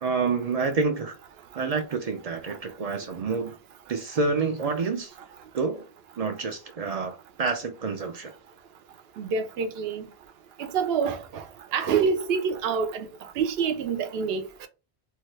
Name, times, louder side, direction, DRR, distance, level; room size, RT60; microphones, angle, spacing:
voice 1, 0.0-1.1 1.6-3.5 3.9-5.1 5.5-5.9 6.2-8.3, right 4 dB, 55° right, 0.4 m, -28 dB
voice 2, 9.2-10.1 10.6-11.4 11.7-13.1 13.4-14.7, right 6 dB, 70° right, 0.8 m, -27 dB
2.7 x 2.2 x 3.2 m
omnidirectional pair, 1.1 m